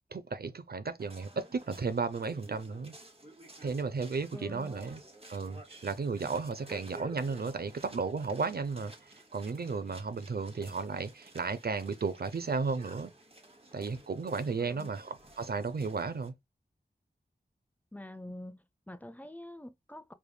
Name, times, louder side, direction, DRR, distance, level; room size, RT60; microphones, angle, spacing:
voice 1, 0.1-2.9 3.6-5.0 5.3-13.1 13.7-16.3, right 4 dB, 60° right, 0.5 m, -34 dB
sound 1, 1.0-16.3, right 1 dB, 35° right, 1.2 m, -54 dB
voice 2, 4.3-4.8 14.6-14.9 17.9-20.1, left 1 dB, 10° left, 0.5 m, -46 dB
4.7 x 3.4 x 2.2 m
wide cardioid pair, 55°, 18 cm